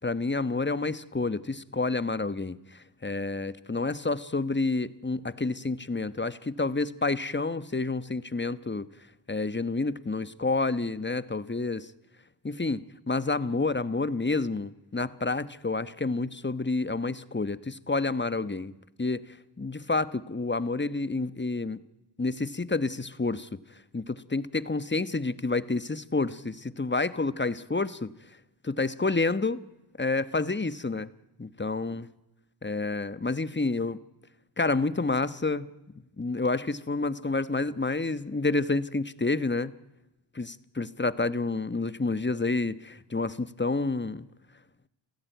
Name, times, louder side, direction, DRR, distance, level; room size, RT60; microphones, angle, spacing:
voice 1, 0.0-8.9 9.3-11.9 12.4-21.8 22.2-28.1 28.6-29.6 30.0-31.1 31.4-32.1 32.6-34.0 34.6-35.7 36.2-39.7 40.3-44.2, left 3 dB, 25° left, 15 dB, 1.2 m, -29 dB
28.5 x 16.0 x 9.3 m, 0.97 s
cardioid pair, 50°, 47 cm